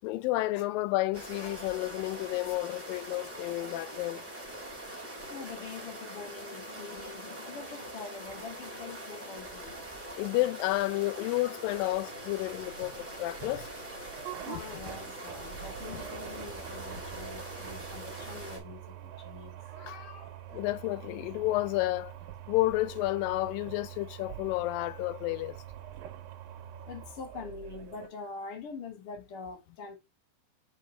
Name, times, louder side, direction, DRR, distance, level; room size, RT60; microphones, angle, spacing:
voice 1, 0.0-4.2 10.2-13.7 20.5-22.1 22.5-25.6, left 18 dB, 80° left, 2.1 m, -31 dB
sound 1, 1.1-18.6, right 1 dB, 5° right, 1.6 m, -43 dB
voice 2, 1.4-1.7 3.6-3.8 5.3-9.8 11.8-11.9 14.4-20.6 26.0-26.1 26.9-30.0, left 5 dB, 50° left, 1.9 m, -45 dB
sound 2, 11.7-28.1, right 11 dB, 80° right, 2.4 m, -45 dB
6.7 x 4.7 x 3.2 m
omnidirectional pair, 4.2 m